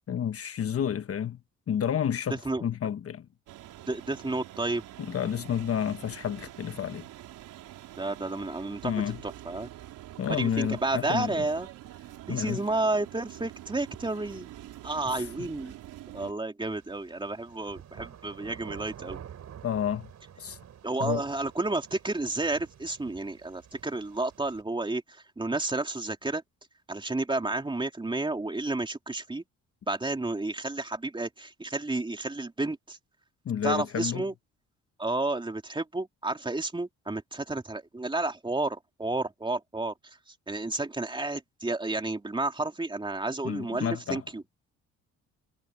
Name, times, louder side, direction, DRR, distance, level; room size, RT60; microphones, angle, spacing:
voice 1, 0.1-1.4 1.7-3.3 5.0-7.1 8.8-9.2 10.2-11.4 12.3-12.6 15.1-15.3 19.6-20.1 20.4-20.6 21.0-21.2 33.4-34.2 43.4-44.2, left 9 dB, 50° left, 1.2 m, -30 dB
voice 2, 2.3-2.6 3.9-4.8 8.0-9.7 10.4-11.7 12.3-14.5 14.8-15.7 16.1-19.2 20.8-26.4 26.9-29.4 29.9-33.0 33.6-34.3 35.0-39.9 40.5-44.4, right 2 dB, 15° right, 2.8 m, -31 dB
sound 1, 3.5-16.3, right 14 dB, 85° right, 3.9 m, -46 dB
sound 2, 16.6-24.6, right 9 dB, 60° right, 4.0 m, -49 dB
cardioid pair, 90°, 30 cm